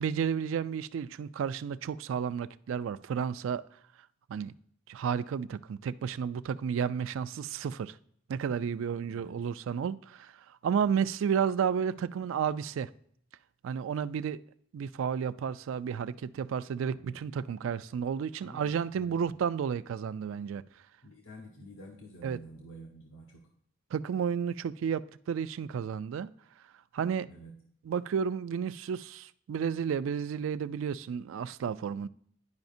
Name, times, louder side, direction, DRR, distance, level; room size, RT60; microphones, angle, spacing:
voice 1, 0.0-3.6 4.3-4.5 4.9-8.0 8.3-12.9 13.6-14.4 14.7-20.6 22.2-22.4 23.9-26.3 26.9-27.3 27.9-32.1, right 7 dB, 75° right, 0.3 m, -32 dB
voice 2, 9.1-9.4 10.8-11.0 16.9-17.2 18.4-19.3 21.0-23.5 27.2-27.5, right 1 dB, 90° left, 0.9 m, -49 dB
10.5 x 4.9 x 2.6 m
head